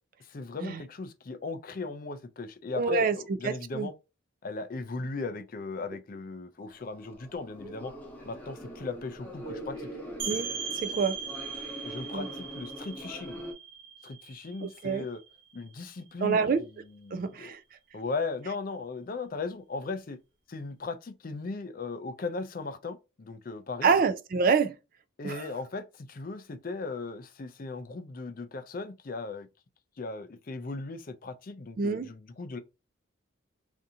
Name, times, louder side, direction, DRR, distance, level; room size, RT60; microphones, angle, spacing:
voice 1, 0.3-3.9 4.4-7.9 8.2-9.9 11.8-13.4 14.0-15.2 15.5-17.6 17.9-20.2 20.5-23.9 25.2-29.5 30.0-32.6, left 3 dB, 45° left, 0.4 m, -37 dB
voice 2, 2.7-3.2 3.4-3.9 10.3-10.5 10.8-11.2 12.1-12.3 14.6-15.1 16.2-16.6 17.1-17.6 23.8-24.8 25.2-25.5 31.8-32.1, right 5 dB, 40° right, 0.3 m, -26 dB
sound 1, 6.7-13.5, equal, 10° left, 0.8 m, -43 dB
sound 2, 10.2-15.7, right 6 dB, 60° right, 0.8 m, -39 dB
2.7 x 2.6 x 3.5 m
head